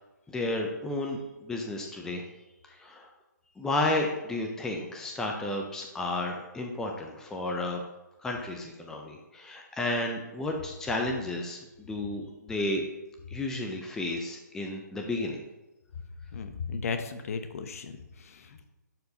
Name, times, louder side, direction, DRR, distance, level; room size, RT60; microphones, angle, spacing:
voice 1, 0.3-2.2 2.7-3.1 3.6-7.8 8.2-12.8 13.3-15.4, left 2 dB, 5° left, 1 dB, 0.5 m, -32 dB
voice 2, 16.3-18.6, left 5 dB, 50° left, 8 dB, 0.8 m, -36 dB
11.5 x 4.6 x 2.8 m, 1.0 s
figure-of-eight pair, 140°, 10 cm